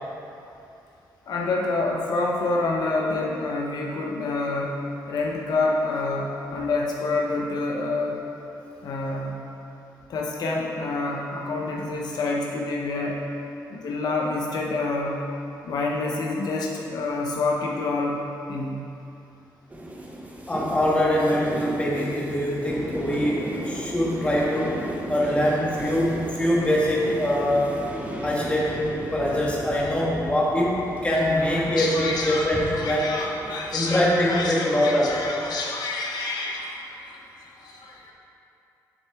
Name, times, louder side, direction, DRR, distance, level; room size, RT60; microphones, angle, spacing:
voice 1, 1.3-4.8 5.1-8.2 8.8-9.4 10.1-13.2 13.7-15.2 15.6-18.2 18.5-18.8 29.8-29.9 31.4-32.5 32.7-38.1, left 3 dB, 65° left, -2 dB, 0.7 m, -28 dB
sound 1, 19.7-34.7, right 1 dB, 20° right, 0.8 m, -35 dB
voice 2, 20.5-24.8 25.1-27.7 28.2-33.2 33.7-35.2, left 1 dB, 15° left, -4 dB, 1.4 m, -23 dB
7.6 x 6.4 x 3.5 m, 2.7 s
cardioid pair, 115°, 7 cm